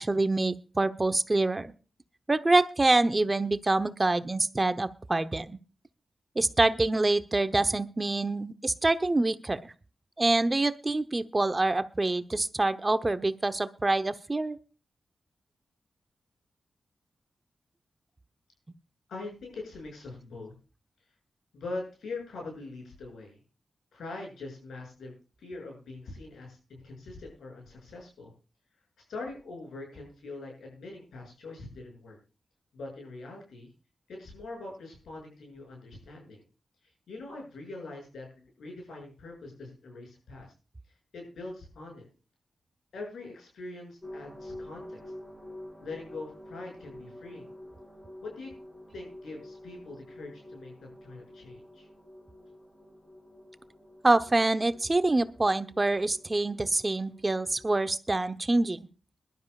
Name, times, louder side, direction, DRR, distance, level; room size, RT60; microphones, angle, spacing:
voice 1, 0.0-1.7 2.3-5.6 6.3-9.7 10.2-14.6 54.0-58.9, right 2 dB, 30° right, 11 dB, 0.9 m, -26 dB
voice 2, 19.1-20.5 21.5-23.4 23.9-28.3 29.1-32.2 32.7-33.7 34.1-36.4 36.8-40.5 41.1-42.1 42.9-45.1 45.8-47.5 48.2-48.5 48.9-51.9, left 2 dB, 90° left, 1 dB, 7.2 m, -43 dB
sound 1, 44.0-57.8, left 1 dB, 15° left, 5.2 m, -48 dB
21.5 x 12.0 x 2.4 m, 0.34 s
cardioid pair, 55°, 0 cm